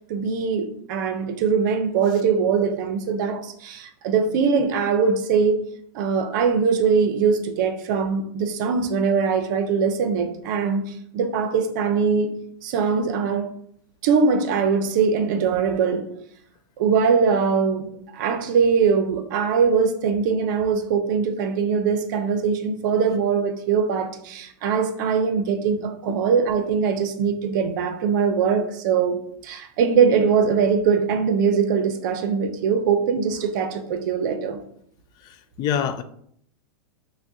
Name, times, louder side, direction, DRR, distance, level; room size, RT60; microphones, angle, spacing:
voice 1, 0.1-5.6 5.9-12.3 12.6-13.5 14.0-16.1 16.8-34.6, right 6 dB, 60° right, 0.6 m, -22 dB
voice 2, 35.2-36.0, left 8 dB, 35° left, 0.3 m, -27 dB
5.9 x 2.2 x 2.7 m
hypercardioid pair, 120°, 12 cm